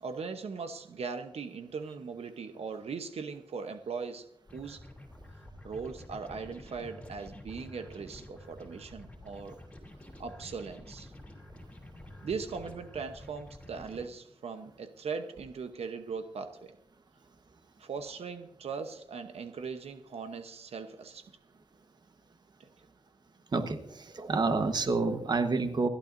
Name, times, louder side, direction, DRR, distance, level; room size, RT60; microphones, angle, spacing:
voice 1, 0.0-4.3 4.5-4.8 5.6-9.6 10.2-11.1 12.2-16.7 17.8-21.3 22.6-22.7, right 5 dB, 85° right, 7 dB, 0.9 m, -39 dB
sound 1, 4.5-14.1, left 1 dB, 10° left, 3.0 m, -49 dB
voice 2, 23.5-25.9, right 3 dB, 45° right, 7 dB, 1.2 m, -29 dB
28.5 x 11.5 x 2.6 m, 0.75 s
wide cardioid pair, 170°, 10 cm